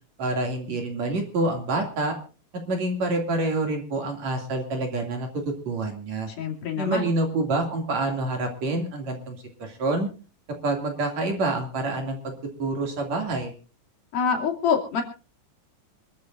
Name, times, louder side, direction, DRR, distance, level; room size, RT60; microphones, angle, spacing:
voice 1, 0.2-2.2 2.5-6.3 6.8-10.1 10.6-13.5, right 2 dB, 50° right, 3 dB, 3.6 m, -27 dB
voice 2, 6.4-7.1 14.1-15.0, left 6 dB, 75° left, 1 dB, 4.6 m, -25 dB
25.5 x 13.5 x 2.6 m, 0.35 s
omnidirectional pair, 4.2 m